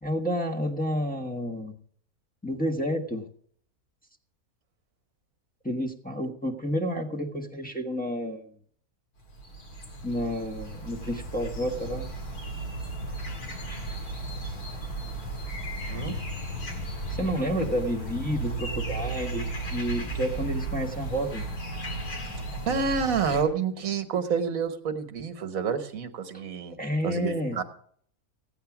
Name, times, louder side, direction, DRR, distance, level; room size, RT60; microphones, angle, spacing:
voice 1, 0.0-1.7 2.4-3.3 5.6-8.5 10.0-12.1 17.1-21.5 26.3-26.4 26.8-27.6, equal, 5° left, -1 dB, 1.1 m, -30 dB
sound 1, 9.2-23.4, right 2 dB, 80° left, 3.0 m, -36 dB
sound 2, 15.7-21.2, right 3 dB, 45° left, 1.7 m, -36 dB
voice 2, 22.7-26.8 27.0-27.6, right 6 dB, 65° right, 9 dB, 1.5 m, -28 dB
16.0 x 9.2 x 5.9 m, 0.63 s
omnidirectional pair, 1.6 m